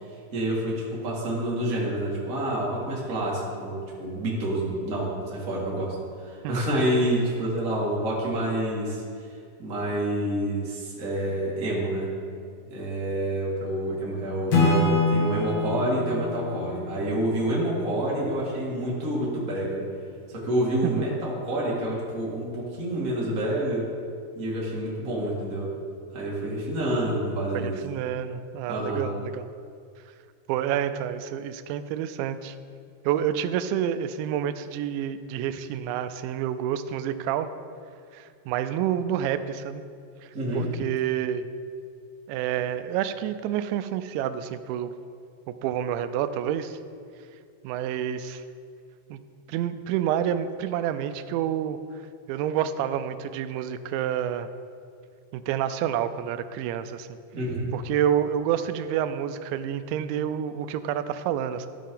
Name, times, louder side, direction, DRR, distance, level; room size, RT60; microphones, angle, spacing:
voice 1, 0.3-5.9 6.2-9.0 9.6-12.1 12.7-19.8 20.3-23.8 24.3-25.7 26.1-27.8 28.7-29.1 40.3-40.6 57.3-57.7, right 1 dB, 40° right, -6 dB, 1.2 m, -28 dB
Acoustic guitar / Strum, 14.5-18.1, left 2 dB, 55° left, 2.0 m, -26 dB
voice 2, 20.8-21.2 27.5-29.5 30.5-32.6 33.1-37.5 38.1-39.8 40.2-40.3 40.5-41.5 42.3-44.9 45.5-46.8 47.6-48.4 49.1-49.2 49.5-51.8 52.3-54.5 55.3-57.1 57.7-61.7, right 10 dB, 85° right, 11 dB, 2.8 m, -28 dB
13.5 x 8.2 x 3.8 m, 2.3 s
omnidirectional pair, 5.2 m